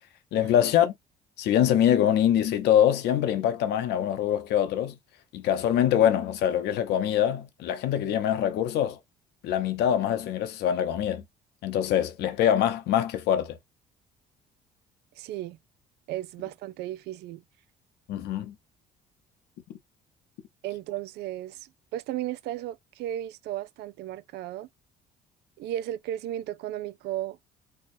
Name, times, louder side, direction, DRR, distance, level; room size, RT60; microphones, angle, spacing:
voice 1, 0.3-0.9 1.4-5.0 5.3-9.0 9.4-11.2 11.6-13.6 18.1-18.5, left 10 dB, 80° left, 0.8 m, -24 dB
voice 2, 15.2-15.6 16.1-17.4 20.6-24.7 25.6-27.4, right 13 dB, 75° right, 0.5 m, -35 dB
4.4 x 2.3 x 2.6 m
cardioid pair, 110°, 17 cm